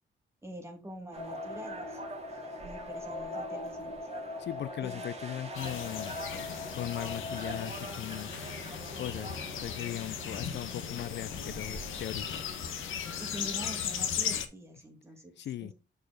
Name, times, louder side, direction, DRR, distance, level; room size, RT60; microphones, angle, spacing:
voice 1, 0.4-2.0 2.6-3.9 4.8-5.0 13.2-15.3 15.6-15.7, equal, 15° right, 2.4 m, -45 dB
sound 1, 1.1-14.1, right 3 dB, 35° right, 2.0 m, -46 dB
sound 2, 1.2-7.7, left 3 dB, 35° left, 2.1 m, -41 dB
voice 2, 4.4-6.2 6.7-8.7 9.0-12.4 15.4-15.7, left 12 dB, 65° left, 0.4 m, -39 dB
sound 3, 5.5-14.5, left 8 dB, 90° left, 1.1 m, -37 dB
6.5 x 4.8 x 5.0 m
cardioid pair, 100°, 20 cm